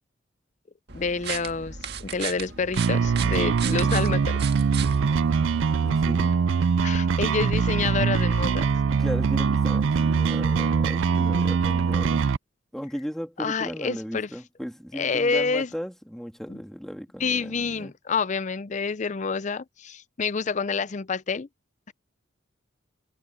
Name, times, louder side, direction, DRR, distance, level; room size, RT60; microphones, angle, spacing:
voice 1, 0.9-4.4 6.8-8.7 13.4-14.3 14.9-15.7 16.5-16.6 17.2-21.5 21.9-22.0, left 5 dB, 40° left, 0.5 m, -28 dB
sound 1, 0.9-5.8, right 7 dB, 55° right, 1.8 m, -36 dB
sound 2, 2.8-12.4, right 5 dB, 80° right, 0.4 m, -23 dB
voice 2, 3.6-4.2 5.8-6.4 8.9-12.3 12.7-17.9, equal, ahead, 2.8 m, -36 dB
head